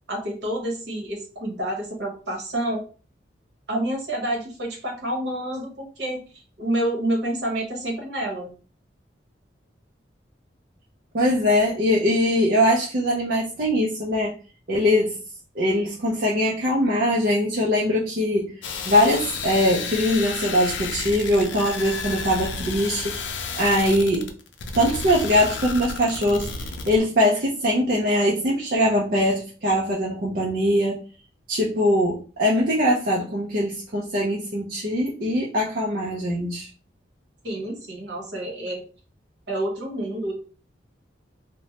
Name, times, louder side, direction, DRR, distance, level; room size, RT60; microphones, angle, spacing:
voice 1, 0.1-2.8 3.7-8.5 37.4-38.8 39.5-40.3, right 1 dB, 65° right, -1 dB, 1.0 m, -28 dB
voice 2, 11.1-14.3 14.7-15.2 15.6-23.1 23.5-24.3 24.7-31.0 31.5-36.7, equal, 50° right, -4 dB, 0.5 m, -22 dB
sound 1, 18.6-27.0, left 4 dB, 80° left, 0.5 m, -32 dB
3.0 x 2.1 x 2.8 m, 0.38 s
head